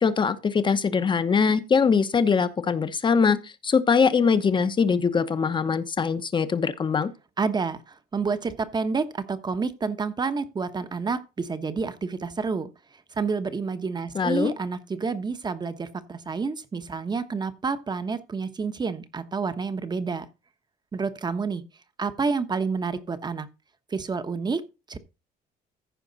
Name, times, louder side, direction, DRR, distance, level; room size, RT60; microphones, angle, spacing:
voice 1, 0.0-7.1 14.1-14.5, left 5 dB, 30° left, 1.0 m, -22 dB
voice 2, 7.4-12.7 13.1-20.3 20.9-21.6 22.0-23.5 23.9-24.6 24.9-25.0, right 4 dB, 25° right, 1.1 m, -29 dB
15.0 x 5.2 x 4.0 m
cardioid pair, 110°, 17 cm